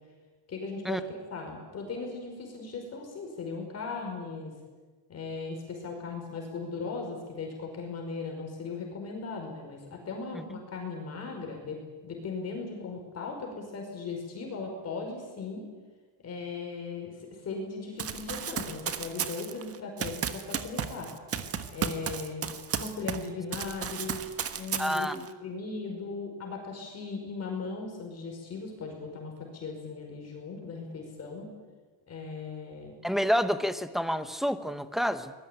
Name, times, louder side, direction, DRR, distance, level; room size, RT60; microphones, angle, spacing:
voice 1, 0.5-4.5 5.1-15.7 16.2-21.1 21.7-22.5 22.8-24.3 24.6-31.6 32.1-33.0, left 4 dB, 35° left, 2 dB, 5.2 m, -38 dB
Run, 18.0-23.3 23.5-25.3, right 8 dB, 30° right, 1.4 m, -34 dB
voice 2, 24.8-25.2 33.0-35.3, equal, ahead, 10 dB, 1.0 m, -28 dB
25.0 x 20.5 x 9.2 m, 1.3 s
cardioid pair, 160°, 44 cm